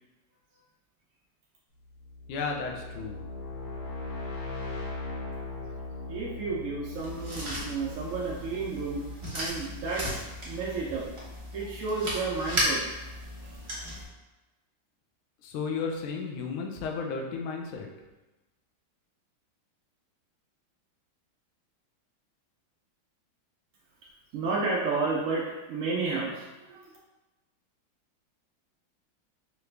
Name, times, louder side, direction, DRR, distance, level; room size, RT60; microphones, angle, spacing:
sound 1, 1.9-10.7, left 3 dB, 60° left, 1.2 m, -40 dB
voice 1, 2.3-3.2 15.4-17.9, left 5 dB, 85° left, 1 dB, 1.5 m, -33 dB
voice 2, 6.1-9.1 9.3-11.1 11.5-13.0 24.3-27.0, right 3 dB, 80° right, -4 dB, 0.7 m, -32 dB
sound 2, 6.9-14.0, equal, 45° right, 0.4 m, -35 dB
4.8 x 2.4 x 3.2 m, 1.1 s
omnidirectional pair, 2.2 m